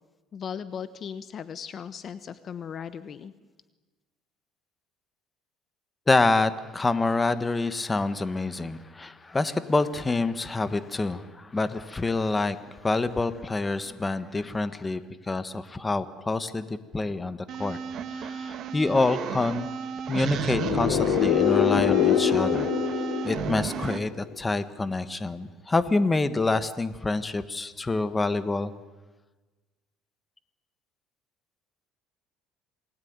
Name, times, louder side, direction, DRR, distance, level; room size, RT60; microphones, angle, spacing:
voice 1, 0.3-3.3, left 7 dB, 40° left, 13 dB, 1.0 m, -37 dB
voice 2, 6.1-17.8 18.1-19.7 20.1-28.7, left 3 dB, 15° left, 13 dB, 1.4 m, -27 dB
sound 1, 17.5-24.0, right 7 dB, 50° right, 2.0 m, -32 dB
sound 2, 20.4-24.1, left 13 dB, 80° left, 1.3 m, -25 dB
28.0 x 20.0 x 9.6 m, 1.2 s
cardioid pair, 125°, 0 cm